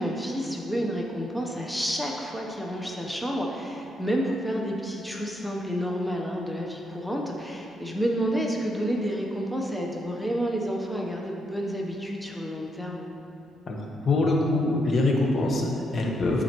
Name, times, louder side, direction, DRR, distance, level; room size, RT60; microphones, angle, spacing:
voice 1, 0.0-13.0, equal, 5° left, -1 dB, 0.7 m, -30 dB
voice 2, 13.7-16.4, left 2 dB, 45° left, 0 dB, 1.0 m, -24 dB
12.0 x 4.2 x 2.9 m, 2.8 s
cardioid pair, 90°, 0 cm